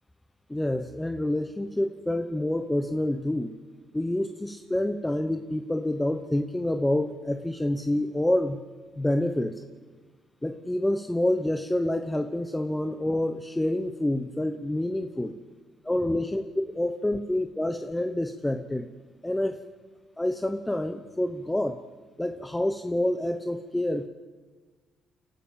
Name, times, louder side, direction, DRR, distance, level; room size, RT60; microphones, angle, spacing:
voice 1, 0.5-3.5 3.9-8.6 9.0-9.5 10.4-15.3 15.8-18.9 19.2-19.6 20.2-21.8 22.2-24.1, left 1 dB, 10° left, 8 dB, 0.9 m, -27 dB
30.0 x 12.5 x 7.4 m, 1.4 s
cardioid pair, 90°, 0 cm